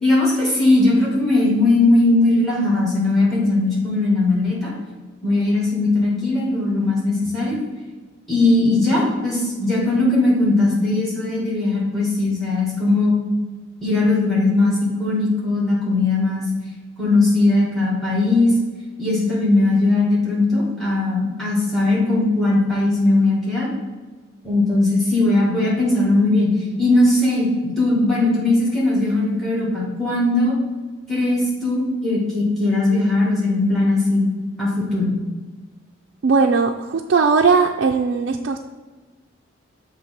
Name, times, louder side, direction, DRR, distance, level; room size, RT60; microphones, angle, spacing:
voice 1, 0.0-4.7 5.2-7.6 8.3-13.1 13.8-16.4 17.0-18.5 19.0-23.7 24.4-26.5 26.8-30.6 31.1-34.2 34.6-35.2, left 2 dB, ahead, -5 dB, 1.9 m, -19 dB
voice 2, 36.2-38.6, right 4 dB, 65° right, 2 dB, 0.3 m, -18 dB
6.8 x 3.2 x 5.8 m, 1.3 s
head